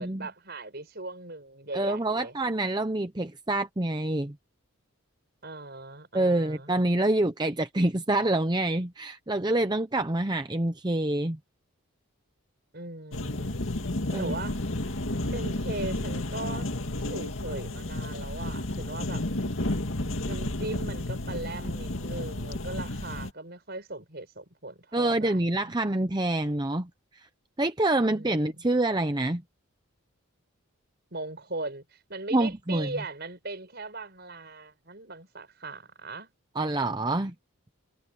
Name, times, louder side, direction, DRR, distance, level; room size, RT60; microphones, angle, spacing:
voice 1, 0.0-2.4 5.4-6.7 12.7-13.6 14.1-14.6 15.3-16.7 17.1-19.3 20.2-25.7 28.1-28.6 31.1-36.3, right 2 dB, 50° right, 6.2 m, -39 dB
voice 2, 1.7-4.4 6.1-11.4 14.1-14.3 24.9-27.3 27.6-29.4 32.3-32.9 36.5-37.3, right 2 dB, 20° right, 0.7 m, -26 dB
sound 1, 13.1-23.3, left 1 dB, 65° left, 2.2 m, -32 dB
head